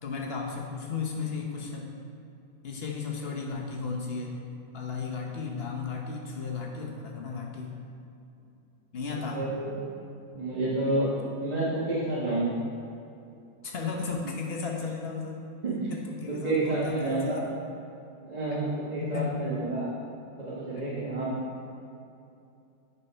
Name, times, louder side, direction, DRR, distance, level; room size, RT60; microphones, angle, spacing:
voice 1, 0.0-1.9 2.6-4.4 4.7-7.8 8.9-9.4 13.6-15.4 15.9-17.4 18.5-18.6 19.0-19.5 20.7-20.9, left 5 dB, 40° left, 0 dB, 1.1 m, -34 dB
voice 2, 9.3-9.8 10.3-12.5 15.6-15.9 16.3-17.5 18.2-19.9 20.5-21.3, right 2 dB, 25° right, -8 dB, 1.2 m, -29 dB
9.5 x 4.4 x 5.6 m, 2.7 s
omnidirectional pair, 1.9 m